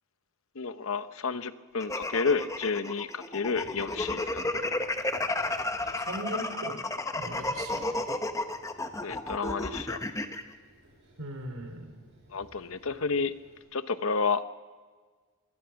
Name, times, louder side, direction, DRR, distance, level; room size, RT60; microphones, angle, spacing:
voice 1, 0.5-4.5 9.0-10.0 12.3-13.3 13.7-14.4, left 4 dB, 65° left, 12 dB, 0.9 m, -30 dB
sound 1, 1.8-10.4, left 2 dB, 15° left, 1.1 m, -32 dB
Run, 3.5-13.6, right 1 dB, 55° right, 7.2 m, -58 dB
voice 2, 6.0-6.9 7.1-7.9 11.2-12.0, right 1 dB, 75° right, 5 dB, 3.4 m, -38 dB
25.0 x 20.0 x 5.9 m, 1.5 s
head